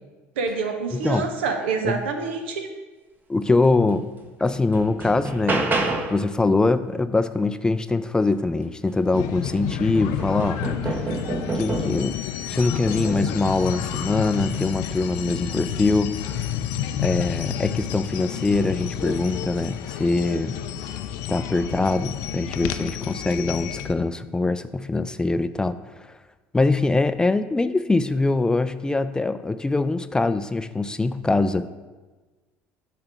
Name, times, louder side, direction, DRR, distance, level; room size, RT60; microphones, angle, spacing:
voice 1, 0.4-2.7, right 5 dB, 90° right, 5 dB, 0.9 m, -27 dB
voice 2, 0.9-1.3 1.8-2.0 3.3-4.1 4.4-10.6 10.9-11.0 11.5-12.2 12.5-16.4 17.0-20.6 21.3-25.8 26.5-31.7, left 3 dB, 15° left, 11 dB, 0.4 m, -23 dB
sound 1, 3.9-4.0 4.5-6.3 8.6-8.7 9.2-12.1 12.9-13.4 14.4-14.7, right 3 dB, 30° right, 1.0 m, -29 dB
sound 2, 9.1-23.9, left 10 dB, 75° left, 0.5 m, -30 dB
8.6 x 3.4 x 6.0 m, 1.3 s
supercardioid pair, 80°, 6 cm